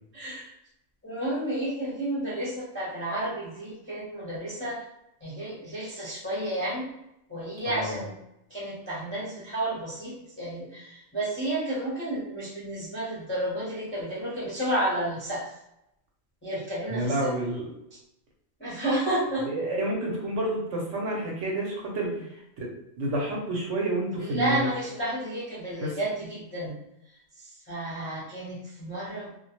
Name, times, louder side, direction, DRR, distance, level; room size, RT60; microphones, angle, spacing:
voice 1, 0.1-0.5 1.0-4.8 5.2-6.9 7.3-8.1 8.5-15.5 16.4-17.3 18.6-19.5 24.2-26.8 27.4-29.3, right 1 dB, 15° left, -8 dB, 0.4 m, -31 dB
voice 2, 7.7-8.0 16.9-17.7 19.4-22.7 23.0-24.7 25.8-26.0, right 1 dB, 65° right, -2 dB, 0.9 m, -29 dB
2.3 x 2.1 x 2.8 m, 0.83 s
omnidirectional pair, 1.4 m